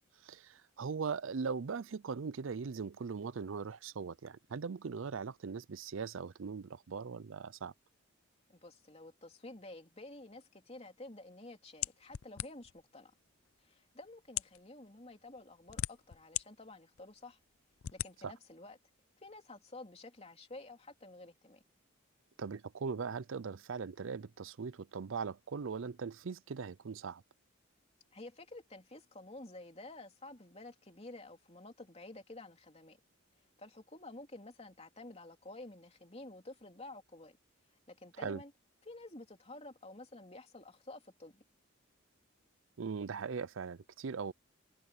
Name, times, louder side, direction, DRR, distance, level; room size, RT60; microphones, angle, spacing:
voice 1, 0.2-7.7 18.2-18.3 22.4-27.2 38.2-38.4 42.8-44.3, right 5 dB, 65° right, 0.5 m, -40 dB
voice 2, 8.5-13.1 13.6-17.4 17.9-18.8 19.2-21.6 28.1-33.0 33.6-37.4 37.9-38.5 38.8-41.4, left 2 dB, 30° left, 3.3 m, -51 dB
sound 1, 11.8-12.8 13.6-13.7 14.2-14.6 15.4-16.4 17.0-17.1 17.8-18.1, left 13 dB, 80° left, 0.5 m, -38 dB
head